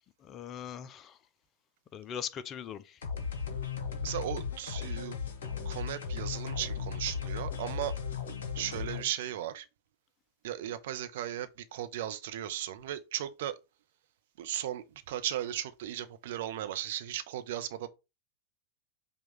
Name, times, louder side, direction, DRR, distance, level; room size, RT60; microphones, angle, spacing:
voice 1, 0.2-1.2 1.9-3.0, left 8 dB, 30° left, 0.4 m, -40 dB
sound 1, 3.0-9.0, left 6 dB, 60° left, 1.0 m, -36 dB
voice 2, 4.0-5.2 5.6-8.0 8.5-9.7 10.4-13.6 14.4-17.9, right 12 dB, 55° right, 0.6 m, -36 dB
5.3 x 2.4 x 3.6 m
figure-of-eight pair, 90°, 0 cm